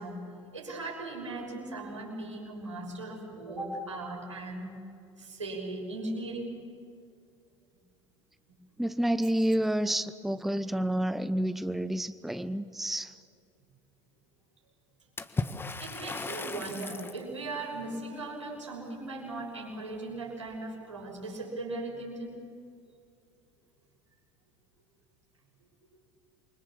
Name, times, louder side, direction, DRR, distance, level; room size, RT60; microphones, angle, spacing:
voice 1, 0.0-4.7 5.2-6.6 15.8-22.4, right 2 dB, 85° right, -2 dB, 6.5 m, -38 dB
voice 2, 8.8-13.2, right 1 dB, ahead, 12 dB, 0.8 m, -29 dB
Water / Splash splatter, 15.2-17.3, left 3 dB, 15° left, 1.4 m, -36 dB
27.5 x 24.5 x 7.3 m, 2.4 s
figure-of-eight pair, 75°, 15 cm